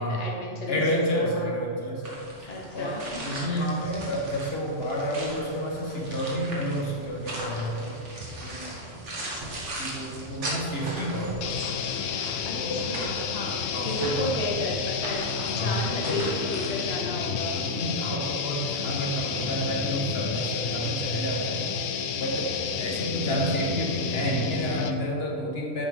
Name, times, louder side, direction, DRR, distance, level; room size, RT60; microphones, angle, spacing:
voice 1, 0.0-1.5 2.5-3.6 12.1-17.6 22.8-23.3, left 1 dB, 35° left, -1 dB, 0.9 m, -34 dB
voice 2, 0.7-2.1 2.4-8.0 8.4-8.7 9.8-11.7 12.5-12.8 13.7-14.4 15.5-16.2 17.5-21.9 22.2-25.9, equal, 55° left, -2 dB, 1.7 m, -30 dB
sound 1, 2.0-16.9, right 1 dB, 70° right, 1.9 m, -38 dB
sound 2, 11.4-25.1, left 7 dB, 70° left, 0.8 m, -31 dB
9.4 x 7.3 x 3.7 m, 2.4 s
omnidirectional pair, 1.3 m